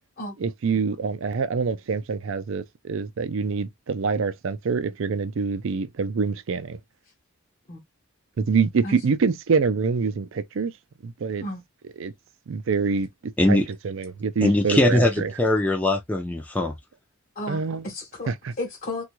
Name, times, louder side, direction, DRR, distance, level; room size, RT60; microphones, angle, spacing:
voice 1, 0.4-6.8 8.4-10.7 11.0-11.4 12.0-12.1 12.5-13.1 13.5-15.3 17.5-17.9 18.3-18.5, right 5 dB, 60° right, 0.4 m, -25 dB
voice 2, 14.4-16.7, left 1 dB, 5° left, 0.4 m, -21 dB
voice 3, 17.4-18.3 18.6-19.0, left 1 dB, 35° left, 0.7 m, -33 dB
3.4 x 2.3 x 3.0 m
head